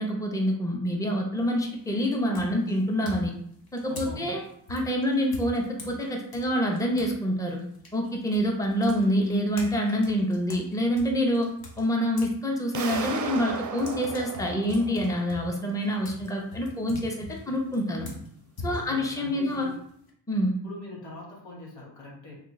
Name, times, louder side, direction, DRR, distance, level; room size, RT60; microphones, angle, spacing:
voice 1, 0.0-3.3 3.7-4.4 4.7-7.6 7.9-11.5 11.8-18.1 18.6-19.7 20.3-20.5, equal, 5° left, 1 dB, 0.8 m, -26 dB
sound 1, 1.4-1.8 2.3-7.2 7.5-12.4 12.7-20.1, left 2 dB, 50° left, 1.0 m, -42 dB
voice 2, 3.9-4.4 18.6-19.7 20.6-22.3, left 2 dB, 75° left, -3 dB, 1.4 m, -43 dB
sound 2, 12.7-15.6, right 6 dB, 45° right, 0.5 m, -35 dB
3.2 x 2.4 x 3.9 m, 0.67 s
cardioid pair, 55°, 45 cm